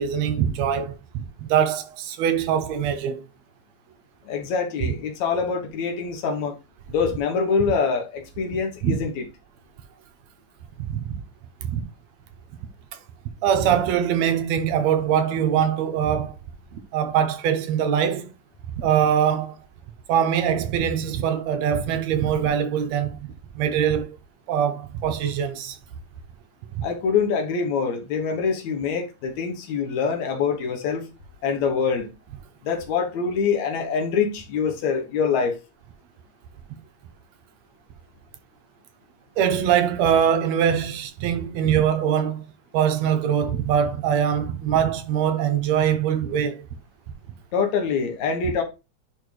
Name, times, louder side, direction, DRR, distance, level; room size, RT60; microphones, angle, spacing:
voice 1, 0.0-3.2 4.8-4.9 8.8-9.0 10.8-11.2 11.6-11.8 13.4-16.4 16.7-18.3 18.8-19.6 20.1-24.2 24.5-25.8 26.8-26.9 39.4-42.5 42.7-46.7, right 9 dB, 70° right, 1.9 m, -23 dB
voice 2, 4.3-6.6 6.9-9.2 26.8-31.1 31.4-32.1 32.6-35.6 47.5-48.6, left 5 dB, 70° left, 2.4 m, -25 dB
10.5 x 4.4 x 3.3 m
omnidirectional pair, 3.5 m